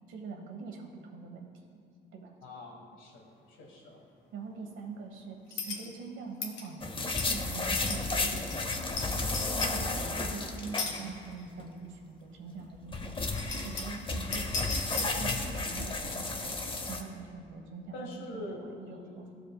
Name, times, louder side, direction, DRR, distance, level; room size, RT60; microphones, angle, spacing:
voice 1, 0.1-1.8 2.1-2.3 4.3-8.9 9.4-19.3, right 4 dB, 80° right, 2 dB, 1.2 m, -44 dB
voice 2, 2.4-4.0 17.9-19.3, left 1 dB, 85° left, 0 dB, 1.4 m, -44 dB
sound 1, 5.5-5.9 6.4-6.7 7.1-7.3 7.8-8.0 8.4-9.0 9.3-9.7 10.8-10.9 11.4-11.5 12.7-12.8 13.2-14.0 14.3-15.4, left 4 dB, 70° left, 1.2 m, -35 dB
sound 2, 6.8-11.3 11.6-11.7 12.6-17.0, left 3 dB, 25° left, 0.7 m, -33 dB
14.5 x 5.0 x 2.3 m, 2.5 s
cardioid pair, 90°, 20 cm